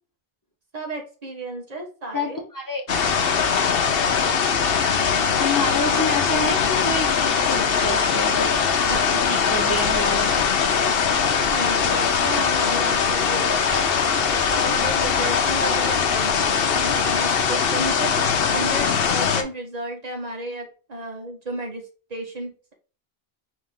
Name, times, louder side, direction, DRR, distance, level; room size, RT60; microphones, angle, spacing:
voice 1, 0.7-2.4 11.3-14.0 14.3-22.7, right 1 dB, 40° right, 0 dB, 1.3 m, -33 dB
voice 2, 2.1-2.8 5.4-8.6 8.8-10.8, left 2 dB, 20° left, 2 dB, 0.8 m, -28 dB
sound 1, 2.9-19.4, left 6 dB, 65° left, 0.9 m, -21 dB
4.2 x 2.8 x 3.7 m, 0.36 s
omnidirectional pair, 1.1 m